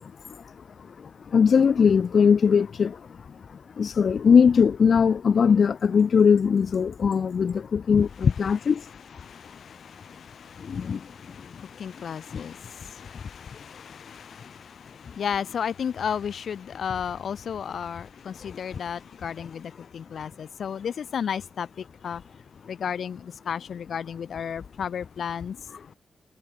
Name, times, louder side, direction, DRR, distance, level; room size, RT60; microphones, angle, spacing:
voice 1, 0.0-8.9 10.6-11.6 12.3-12.5 13.1-13.2 13.5-13.6 15.1-15.2 18.4-18.8 19.4-19.5 19.8-19.9 25.7-25.9, left 6 dB, 60° left, 0.3 m, -22 dB
voice 2, 9.2-14.7 15.1-21.7 22.0-22.2 22.7-25.6, left 7 dB, 75° left, 1.0 m, -33 dB
wide cardioid pair, 120°, 0 cm